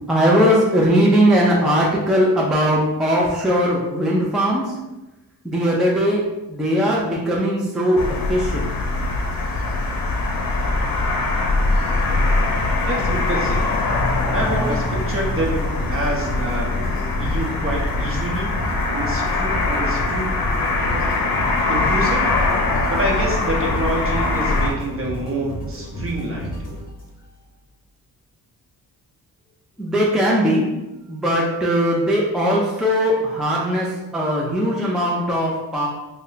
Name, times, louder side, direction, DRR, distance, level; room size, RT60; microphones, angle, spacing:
voice 1, 0.1-4.7 5.4-6.2 6.5-8.0 8.3-8.9 29.8-30.6 31.1-33.9 34.1-35.9, equal, ahead, -4 dB, 0.4 m, -19 dB
sound 1, 8.0-24.7, left 2 dB, 65° left, 0.6 m, -22 dB
sound 2, 12.1-27.4, equal, 25° left, 0.9 m, -32 dB
voice 2, 12.8-13.7 14.3-16.7 17.2-18.5 18.9-20.3 21.7-22.2 22.9-26.6, right 1 dB, 35° right, -1 dB, 0.8 m, -27 dB
3.2 x 2.2 x 3.8 m, 1.0 s
wide cardioid pair, 140°, 37 cm